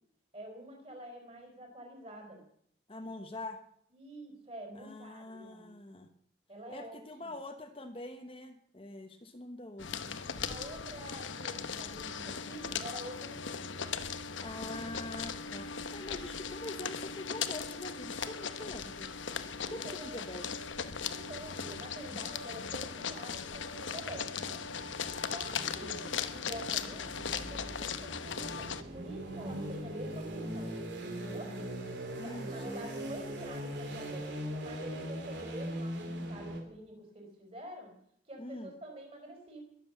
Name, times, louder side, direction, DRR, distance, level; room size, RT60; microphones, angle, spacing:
voice 1, 0.3-2.4 3.9-5.8 6.5-7.3 10.4-13.6 19.6-20.3 21.1-24.6 25.3-31.6 32.2-37.9 38.3-39.6, right 1 dB, 30° right, 2 dB, 4.5 m, -47 dB
voice 2, 2.9-3.6 4.7-6.1 6.7-10.2 14.4-19.1 19.7-20.6 25.8-26.0 30.3-33.2 38.4-38.7, left 1 dB, 30° left, 7 dB, 1.1 m, -45 dB
sound 1, 9.8-28.8, left 6 dB, 85° left, 1.0 m, -38 dB
sound 2, 24.0-36.6, right 1 dB, 70° right, 3.1 m, -41 dB
21.5 x 7.8 x 7.0 m, 0.68 s
head